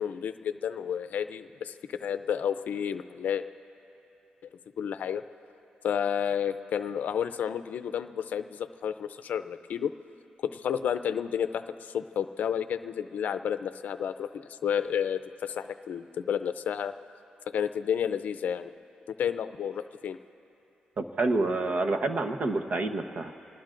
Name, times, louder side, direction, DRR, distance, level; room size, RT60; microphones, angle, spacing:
voice 1, 0.0-3.4 4.8-5.2 5.8-9.9 10.4-16.9 17.5-18.7 19.1-20.2, left 8 dB, 75° left, 11 dB, 0.5 m, -31 dB
voice 2, 21.0-23.3, right 2 dB, 55° right, 7 dB, 1.0 m, -28 dB
26.5 x 19.5 x 2.6 m, 2.9 s
cardioid pair, 90°, 3 cm